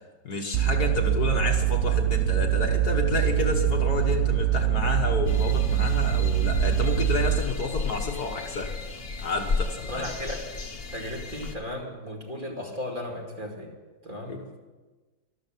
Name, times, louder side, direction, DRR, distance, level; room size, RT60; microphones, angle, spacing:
voice 1, 0.2-8.7 9.2-10.1 14.3-14.4, left 4 dB, 55° left, 3 dB, 1.7 m, -30 dB
sound 1, 0.5-7.4, right 11 dB, 75° right, 0.6 m, -24 dB
sound 2, 5.3-11.6, left 4 dB, 35° left, 1.2 m, -33 dB
voice 2, 9.9-10.5 10.9-13.7 14.0-14.4, left 1 dB, 25° right, -1 dB, 2.4 m, -35 dB
12.5 x 12.5 x 7.4 m, 1.3 s
omnidirectional pair, 2.1 m